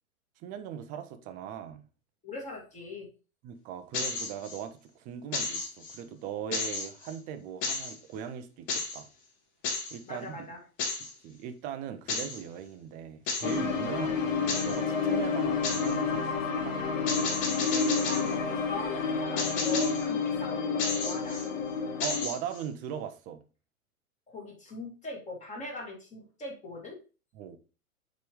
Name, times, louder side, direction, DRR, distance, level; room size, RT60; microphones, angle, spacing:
voice 1, 0.4-1.8 3.4-9.1 9.9-10.5 11.2-16.8 22.0-23.4 27.3-27.6, right 8 dB, 20° right, 0.5 m, -39 dB
voice 2, 2.2-3.1 10.1-10.6 18.1-21.6 24.3-27.0, left 2 dB, 15° left, 2.1 m, -40 dB
sound 1, 3.9-4.6 5.3-6.0 6.5-7.2 7.6-8.0 8.7-9.0 9.6-10.0 10.8-11.1 12.1-12.4 13.3-13.6 14.5-14.8 15.6-16.0 17.1-18.3 19.4-20.1 20.8-21.5 22.0-22.6, left 3 dB, 40° left, 1.7 m, -33 dB
sound 2, 13.4-22.3, left 5 dB, 65° left, 1.2 m, -30 dB
6.7 x 5.1 x 3.1 m
figure-of-eight pair, 105°, 43 cm